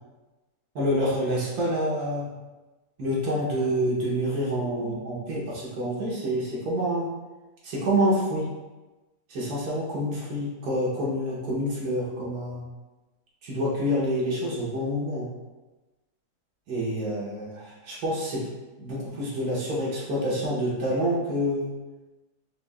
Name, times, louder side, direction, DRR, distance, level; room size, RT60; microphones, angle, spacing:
voice 1, 0.7-2.3 3.0-7.1 7.6-8.5 9.3-12.6 13.4-15.3 16.7-18.5 18.8-21.7, equal, 70° right, -5 dB, 1.4 m, -27 dB
4.4 x 2.8 x 2.3 m, 1.1 s
omnidirectional pair, 1.7 m